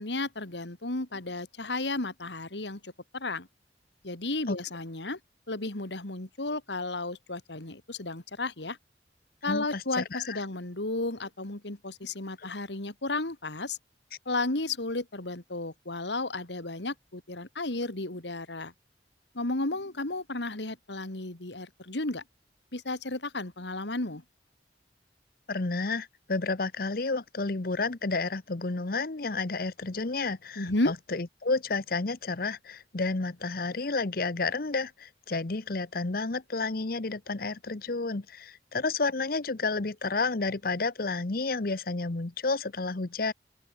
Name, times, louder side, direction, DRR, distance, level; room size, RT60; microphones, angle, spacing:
voice 1, 0.0-3.5 4.0-5.2 5.5-8.8 9.4-13.8 14.3-18.7 19.3-22.2 22.7-24.2 30.6-30.9, left 2 dB, 80° left, 2.6 m, -33 dB
voice 2, 9.5-10.4 25.5-43.3, left 3 dB, 55° left, 1.0 m, -31 dB
open air
head